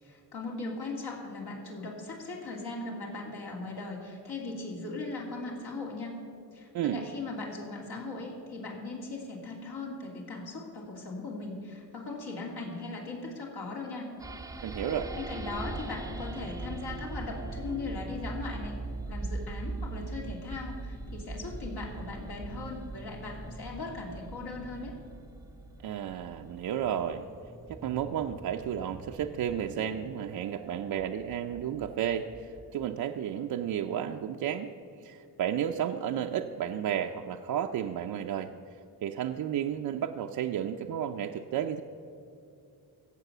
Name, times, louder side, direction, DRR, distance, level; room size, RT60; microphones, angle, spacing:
voice 1, 0.0-6.2 6.5-14.1 15.1-18.8 19.1-24.9, left 3 dB, 65° left, -2 dB, 2.8 m, -39 dB
sound 1, 14.2-32.9, right 3 dB, 10° right, 0.6 m, -41 dB
voice 2, 14.6-15.1 25.8-27.3 27.7-34.7 35.0-38.5 39.0-41.8, right 9 dB, 60° right, 3 dB, 0.6 m, -32 dB
16.5 x 7.0 x 6.7 m, 2.6 s
cardioid pair, 100°, 40 cm